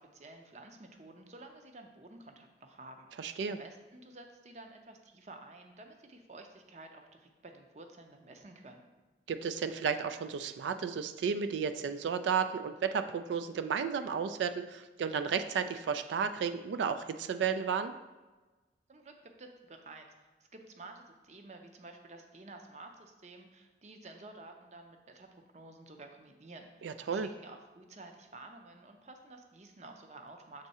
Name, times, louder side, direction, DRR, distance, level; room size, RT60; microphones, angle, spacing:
voice 1, 0.0-8.8 18.9-20.1 20.5-30.7, right 2 dB, 40° right, 5 dB, 0.6 m, -52 dB
voice 2, 3.2-3.6 9.3-17.9 26.8-27.3, right 6 dB, 85° right, 10 dB, 0.3 m, -33 dB
6.6 x 3.6 x 4.2 m, 1.2 s
head